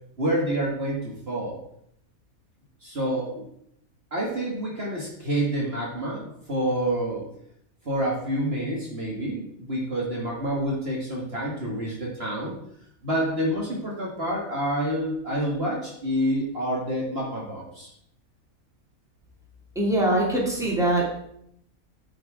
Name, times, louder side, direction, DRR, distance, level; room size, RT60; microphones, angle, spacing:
voice 1, 0.2-1.6 2.8-3.4 4.1-7.2 7.9-12.6 13.0-17.9, right 1 dB, 45° right, -3 dB, 2.0 m, -28 dB
voice 2, 19.8-21.2, right 1 dB, ahead, -4 dB, 2.6 m, -23 dB
8.8 x 6.3 x 4.9 m, 0.73 s
omnidirectional pair, 1.5 m